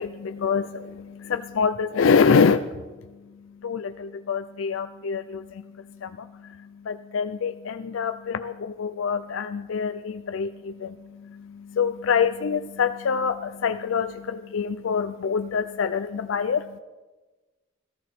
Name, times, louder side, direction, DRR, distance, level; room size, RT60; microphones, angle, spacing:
voice 1, 0.0-16.8, left 6 dB, 80° left, 9 dB, 0.4 m, -26 dB
17.5 x 13.5 x 4.2 m, 1.2 s
head